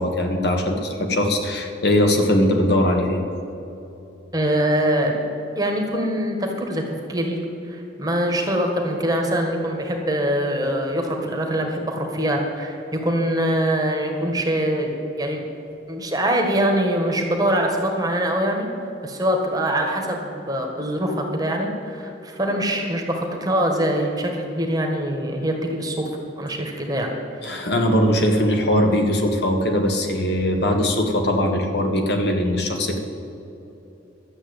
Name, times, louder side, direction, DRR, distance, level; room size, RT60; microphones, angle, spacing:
voice 1, 0.0-3.2 27.4-33.0, left 1 dB, 60° left, 3 dB, 1.5 m, -20 dB
voice 2, 4.3-5.2 5.6-6.8 7.1-7.4 7.7-15.4 15.9-18.7 19.0-26.0 26.4-27.1, right 1 dB, 20° right, 2 dB, 1.4 m, -23 dB
12.0 x 7.9 x 7.9 m, 2.9 s
head